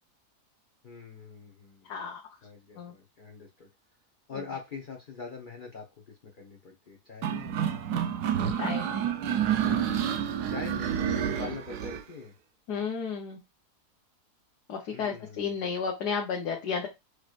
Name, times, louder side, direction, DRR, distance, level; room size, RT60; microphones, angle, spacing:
voice 1, 0.8-1.9 2.4-3.7 4.3-8.0 10.5-12.3 14.9-15.7, left 5 dB, 35° left, 1 dB, 1.0 m, -43 dB
voice 2, 1.8-2.2 2.8-2.9 8.6-9.0 9.7-10.1 12.7-13.4 14.7-16.9, left 6 dB, 80° left, 0 dB, 1.5 m, -33 dB
sound 1, 7.2-12.0, right 9 dB, 80° right, 1.3 m, -29 dB
6.4 x 3.2 x 2.5 m, 0.24 s
omnidirectional pair, 1.7 m